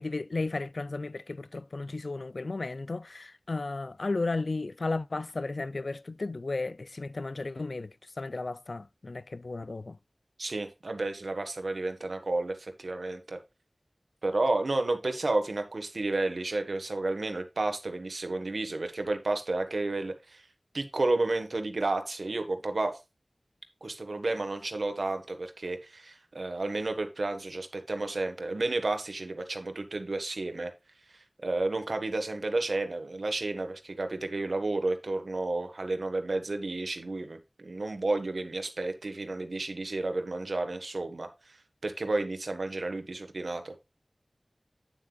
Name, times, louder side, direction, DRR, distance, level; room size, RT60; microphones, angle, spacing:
voice 1, 0.0-10.0, left 3 dB, 80° left, 0.4 m, -34 dB
voice 2, 10.4-13.4 14.2-20.5 20.7-23.0 23.8-30.7 31.1-41.6 41.8-43.7, right 2 dB, 85° right, 1.4 m, -31 dB
8.9 x 7.9 x 2.4 m
wide cardioid pair, 50°, 0 cm